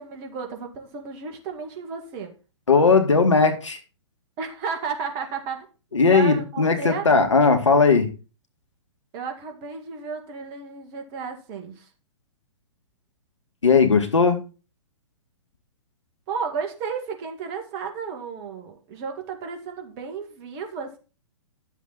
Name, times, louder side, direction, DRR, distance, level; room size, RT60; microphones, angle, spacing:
voice 1, 0.0-2.3 4.4-5.7 6.1-7.1 9.1-11.9 16.3-21.0, right 5 dB, 30° right, 4 dB, 2.1 m, -33 dB
voice 2, 2.7-3.8 5.9-8.1 13.6-14.4, left 4 dB, 70° left, 6 dB, 2.0 m, -18 dB
11.0 x 7.4 x 4.0 m, 0.34 s
figure-of-eight pair, 115°, 16 cm